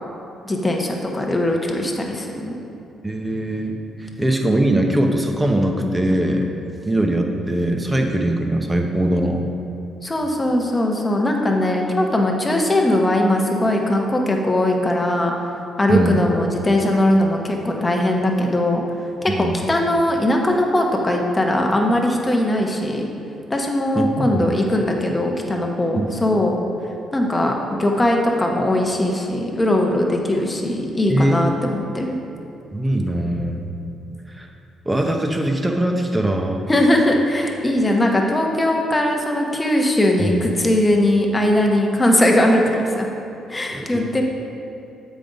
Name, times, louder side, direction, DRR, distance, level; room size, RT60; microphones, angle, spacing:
voice 1, 0.4-2.6 10.0-15.3 15.8-18.8 19.4-23.0 23.5-26.5 27.1-27.5 27.8-32.2 36.7-43.1 43.5-44.2, left 1 dB, 20° left, 1 dB, 0.9 m, -20 dB
voice 2, 3.0-6.5 6.9-9.5 15.9-16.3 19.3-19.6 23.9-24.6 25.9-26.1 31.1-31.5 32.7-33.7 34.4-34.5 34.9-36.7 40.2-40.4 43.7-44.0, right 1 dB, 15° right, 3 dB, 0.7 m, -21 dB
7.5 x 5.2 x 3.8 m, 2.8 s
cardioid pair, 90°, 0 cm